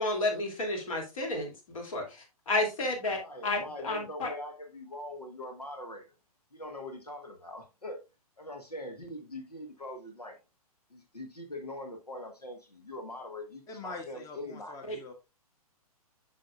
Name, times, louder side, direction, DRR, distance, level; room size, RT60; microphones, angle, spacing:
voice 1, 0.0-4.3 14.9-15.0, left 2 dB, 60° left, 2.6 m, -32 dB
voice 2, 3.2-6.0 6.5-8.0 8.4-10.4 10.9-14.8, left 1 dB, 90° left, 1.3 m, -42 dB
voice 3, 13.7-15.1, left 3 dB, 15° left, 1.0 m, -44 dB
7.4 x 6.2 x 2.4 m
figure-of-eight pair, 120°, 20 cm